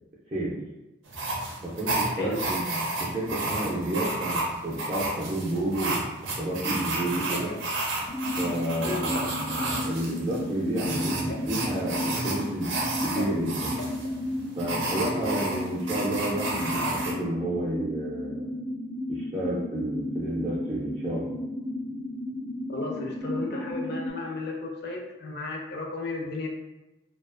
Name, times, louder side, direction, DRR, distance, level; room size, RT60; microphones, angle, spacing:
sound 1, 1.1-17.1, right 2 dB, 85° right, 0.5 m, -31 dB
voice 1, 1.6-6.0 6.4-7.5 8.4-12.7 13.0-13.7 14.6-18.5 19.1-21.4, right 1 dB, 30° right, -7 dB, 0.4 m, -31 dB
sound 2, 8.1-24.1, left 1 dB, 90° left, 0.8 m, -33 dB
voice 2, 22.7-26.5, left 2 dB, 55° left, 0 dB, 0.4 m, -34 dB
2.4 x 2.3 x 2.4 m, 1.0 s
head